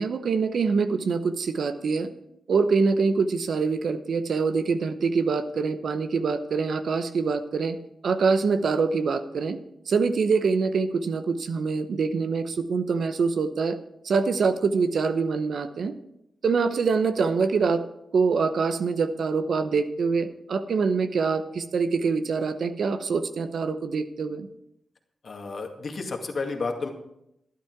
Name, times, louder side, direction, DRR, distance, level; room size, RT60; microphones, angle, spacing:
voice 1, 0.0-2.1 2.5-7.7 8.0-9.6 9.9-13.8 14.0-16.0 16.4-17.8 18.1-24.5, right 5 dB, 75° right, 10 dB, 0.9 m, -25 dB
voice 2, 25.2-26.9, left 3 dB, 60° left, 2 dB, 2.2 m, -31 dB
12.0 x 11.0 x 4.7 m, 0.79 s
cardioid pair, 55°, 0 cm